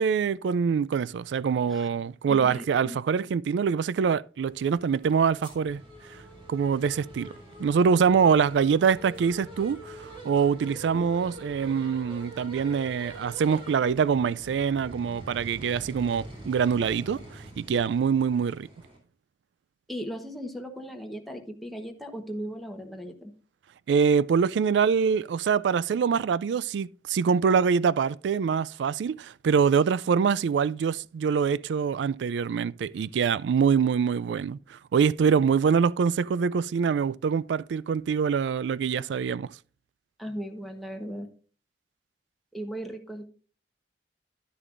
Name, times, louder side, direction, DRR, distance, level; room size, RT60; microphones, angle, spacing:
voice 1, 0.0-5.8 6.5-7.3 7.6-18.7 23.9-39.5, right 6 dB, 80° right, 0.3 m, -24 dB
voice 2, 2.3-3.0 19.9-23.3 40.2-41.3 42.5-43.3, equal, ahead, 1.0 m, -37 dB
sound 1, 4.4-19.0, right 1 dB, 30° right, 3.0 m, -45 dB
10.5 x 9.9 x 2.5 m
head